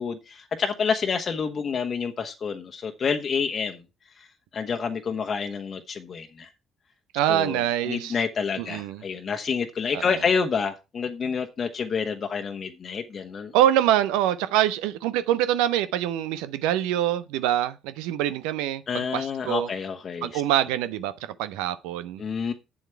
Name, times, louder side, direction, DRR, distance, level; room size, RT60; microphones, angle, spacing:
voice 1, 0.0-3.8 4.2-4.3 4.5-6.5 7.3-13.5 18.9-20.4 22.2-22.5, left 6 dB, 45° left, 1.1 m, -28 dB
voice 2, 7.1-8.1 8.6-9.0 9.9-10.2 13.5-19.7 20.2-22.2, right 12 dB, 70° right, 0.5 m, -25 dB
8.6 x 7.7 x 4.5 m
figure-of-eight pair, 50°, 0 cm